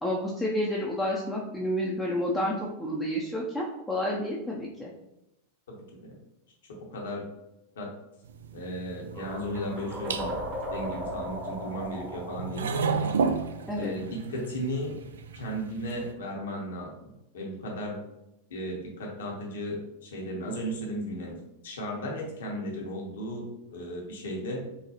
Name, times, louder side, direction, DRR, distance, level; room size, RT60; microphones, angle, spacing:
voice 1, 0.0-4.9 13.7-13.9, equal, 5° left, -5 dB, 0.5 m, -30 dB
voice 2, 5.7-6.1 6.7-7.3 7.8-7.9 8.5-10.4 10.7-12.7 13.8-15.0 15.3-18.0 18.5-21.4 21.6-24.6, equal, 65° left, -1 dB, 0.9 m, -35 dB
sound 1, 8.3-16.1, right 5 dB, 70° right, 0.3 m, -34 dB
sound 2, 9.1-14.1, equal, 30° right, 1.0 m, -37 dB
4.0 x 2.2 x 2.8 m, 0.89 s
figure-of-eight pair, 90°, 0 cm